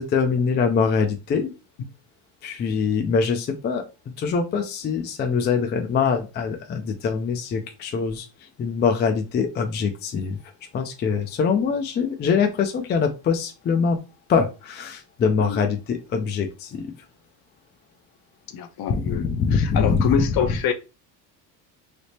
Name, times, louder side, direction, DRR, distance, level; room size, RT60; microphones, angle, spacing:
voice 1, 0.0-1.5 2.4-3.9 4.2-8.3 8.6-10.4 10.7-14.0 14.3-16.9 18.9-20.2, left 5 dB, 25° left, 0.3 m, -23 dB
voice 2, 18.5-19.3 19.5-20.7, left 7 dB, 50° left, 0.7 m, -25 dB
3.3 x 2.0 x 4.0 m
cardioid pair, 120°, 46 cm